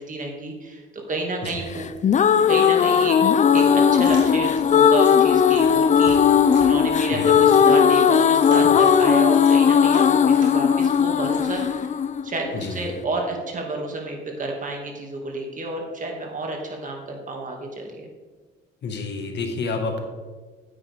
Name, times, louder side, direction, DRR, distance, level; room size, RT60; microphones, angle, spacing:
voice 1, 0.0-1.9 2.5-3.2 3.5-12.0 12.2-18.1, right 2 dB, 40° right, 1 dB, 2.2 m, -30 dB
sound 1, 1.8-12.8, left 7 dB, 35° left, 0.4 m, -17 dB
sound 2, 3.5-11.7, right 4 dB, 70° right, 1.9 m, -46 dB
voice 2, 7.1-7.4 12.5-12.8 18.8-20.0, left 4 dB, 60° left, 4 dB, 1.7 m, -29 dB
9.1 x 8.8 x 3.6 m, 1.4 s
cardioid pair, 90°, 20 cm